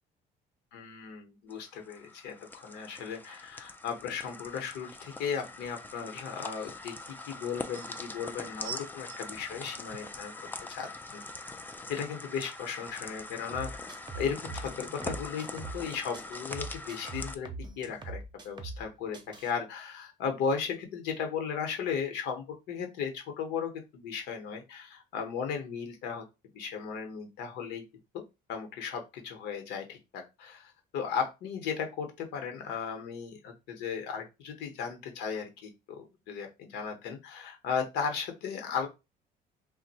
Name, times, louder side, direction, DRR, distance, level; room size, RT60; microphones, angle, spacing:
voice 1, 0.7-6.9 7.3-11.2 11.9-13.7 14.1-17.5 17.8-26.2 26.5-27.8 28.1-28.2 28.5-38.9, left 6 dB, 85° left, 4 dB, 0.9 m, -36 dB
sound 1, 1.5-17.4, left 2 dB, 10° left, 0.3 m, -43 dB
sound 2, 7.4-7.9 8.6-10.2 10.9-11.0, right 8 dB, 75° right, 0.4 m, -44 dB
sound 3, 13.5-15.9 16.1-18.9 19.1-19.5, right 3 dB, 25° right, 0.7 m, -42 dB
2.6 x 2.1 x 4.0 m, 0.25 s
cardioid pair, 110°, 17 cm